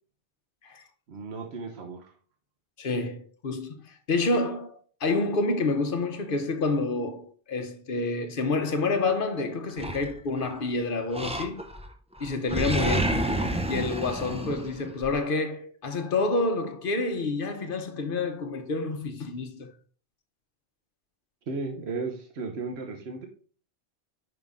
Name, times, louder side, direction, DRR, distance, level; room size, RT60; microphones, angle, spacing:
voice 1, 1.1-2.1 12.8-13.0 21.5-23.3, right 3 dB, 75° right, 1.3 m, -34 dB
voice 2, 2.8-11.6 12.2-13.0 13.7-19.7, left 3 dB, 60° left, 0.9 m, -28 dB
Animal, 9.8-10.6 11.1-11.9 12.2-15.1, right 1 dB, 10° right, 0.5 m, -29 dB
5.6 x 5.4 x 3.6 m
omnidirectional pair, 1.1 m